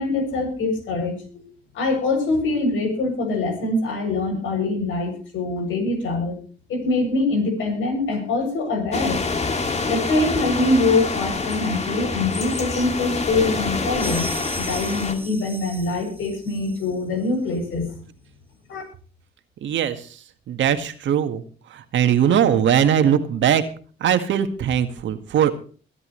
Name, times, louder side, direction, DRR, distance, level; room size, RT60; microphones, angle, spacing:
voice 1, 0.0-1.4 1.7-6.4 6.7-9.2 9.9-17.9 18.7-18.8, left 2 dB, 80° left, 3 dB, 7.9 m, -24 dB
sound 1, 8.9-15.1, left 3 dB, 35° left, 2.5 m, -26 dB
sound 2, 14.0-16.9, equal, 10° right, 3.0 m, -36 dB
voice 2, 19.6-20.2 20.5-21.4 21.7-23.6 24.0-25.5, right 9 dB, 70° right, 9 dB, 1.9 m, -20 dB
23.0 x 11.0 x 3.2 m, 0.40 s
cardioid pair, 90°, 20 cm